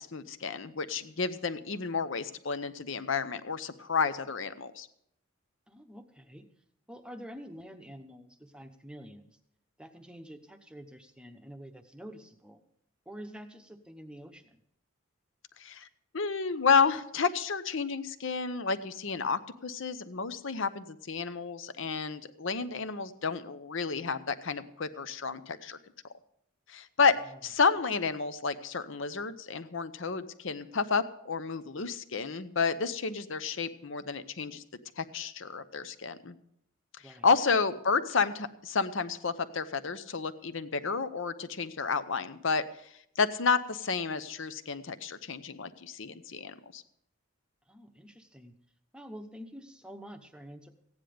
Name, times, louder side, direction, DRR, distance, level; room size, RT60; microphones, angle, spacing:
voice 1, 0.0-4.9 15.6-15.9 16.1-25.8 26.7-27.1 27.4-34.6 35.0-36.3 37.0-42.6 43.2-46.8, left 5 dB, 60° left, 12 dB, 0.8 m, -31 dB
voice 2, 5.7-6.4 6.9-9.3 9.8-12.6 13.1-14.6 27.3-27.4 37.0-37.3 47.7-48.5 48.9-50.7, equal, 5° right, 7 dB, 0.9 m, -47 dB
15.5 x 9.8 x 5.1 m, 0.73 s
head